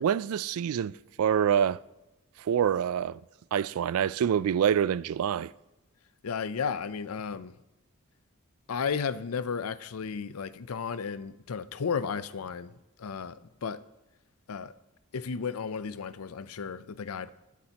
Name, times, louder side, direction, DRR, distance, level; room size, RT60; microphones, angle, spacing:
voice 1, 0.0-1.8 2.4-3.2 3.5-5.5, right 8 dB, 80° right, 0.3 m, -26 dB
voice 2, 6.2-7.5 8.7-12.7 13.0-13.8 14.5-14.7 15.1-17.3, left 6 dB, 85° left, 0.5 m, -33 dB
21.5 x 8.4 x 2.9 m
head